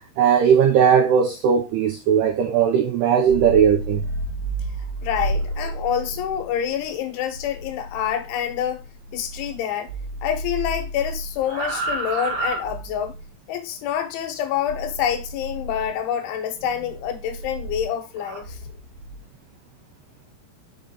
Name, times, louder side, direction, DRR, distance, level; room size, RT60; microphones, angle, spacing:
voice 1, 0.2-4.0, right 7 dB, 80° right, 2.3 m, -18 dB
sound 1, 3.2-9.6 9.9-13.3 14.7-15.9 16.6-19.2, right 2 dB, 55° right, 2.6 m, -31 dB
voice 2, 5.0-8.8 9.1-9.9 10.2-13.1 13.5-18.6, left 9 dB, 75° left, 3.2 m, -27 dB
6.5 x 5.6 x 3.7 m
omnidirectional pair, 5.8 m